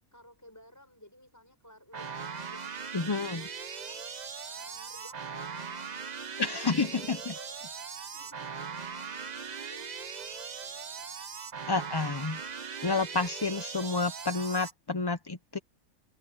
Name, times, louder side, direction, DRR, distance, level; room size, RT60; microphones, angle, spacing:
voice 1, 0.1-7.6 7.9-11.9 12.2-12.6, equal, 10° left, 6.6 m, -57 dB
sound 1, 1.9-14.7, right 6 dB, 35° right, 0.8 m, -40 dB
voice 2, 2.9-3.4 6.4-7.3 11.7-12.4 12.8-15.6, left 3 dB, 25° left, 0.5 m, -30 dB
omnidirectional pair, 1.5 m